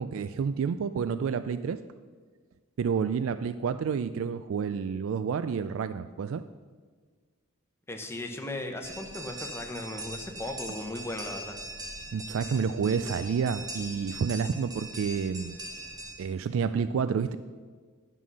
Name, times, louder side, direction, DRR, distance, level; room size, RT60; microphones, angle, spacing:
voice 1, 0.0-1.8 2.8-6.4 12.1-15.6 16.2-17.4, right 6 dB, 70° right, 12 dB, 0.3 m, -29 dB
voice 2, 7.9-11.6, left 1 dB, 10° left, 4 dB, 0.9 m, -37 dB
sound 1, 8.8-16.1, right 1 dB, 20° right, 1.0 m, -41 dB
10.5 x 5.6 x 6.2 m, 1.5 s
head